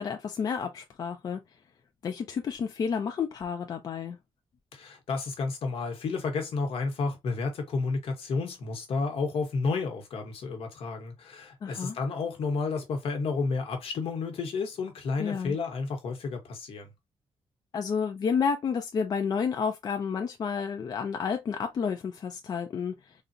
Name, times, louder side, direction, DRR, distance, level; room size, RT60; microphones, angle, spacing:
voice 1, 0.0-1.4 2.0-4.2 11.6-12.0 15.2-15.6 17.7-23.1, left 6 dB, 40° left, 0.4 m, -30 dB
voice 2, 4.7-16.9, left 4 dB, 75° left, 1.0 m, -31 dB
3.7 x 2.0 x 2.5 m
wide cardioid pair, 175°, 10 cm